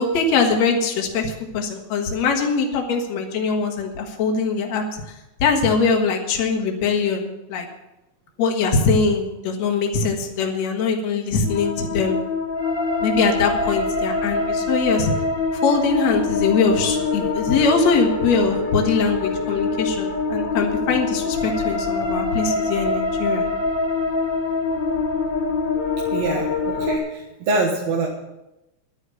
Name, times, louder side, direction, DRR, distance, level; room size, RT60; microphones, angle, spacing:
voice 1, 0.0-5.1 5.4-7.7 8.4-12.2 13.0-15.1 15.6-23.4, left 4 dB, 65° left, 2 dB, 2.8 m, -22 dB
sound 1, 11.4-27.0, left 3 dB, 40° left, 2.8 m, -24 dB
voice 2, 26.1-28.1, right 3 dB, 65° right, -1 dB, 2.7 m, -24 dB
12.0 x 9.8 x 6.9 m, 0.93 s
omnidirectional pair, 3.3 m